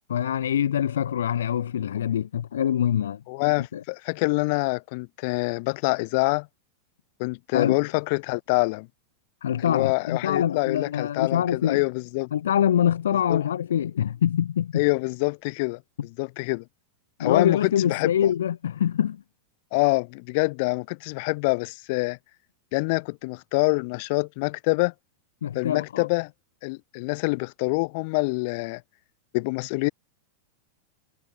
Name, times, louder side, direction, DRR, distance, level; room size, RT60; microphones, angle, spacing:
voice 1, 0.1-3.2 3.7-3.8 7.5-7.8 9.4-11.8 12.3-14.8 17.2-19.2 25.4-26.1, left 9 dB, 65° left, 3.5 m, -24 dB
voice 2, 3.3-6.5 7.2-8.9 9.6-12.3 13.3-13.4 14.7-16.6 17.2-18.1 19.7-22.2 22.7-24.9 25.5-26.3 26.6-28.8 29.3-29.9, left 29 dB, 45° left, 5.6 m, -26 dB
figure-of-eight pair, 90°, 0 cm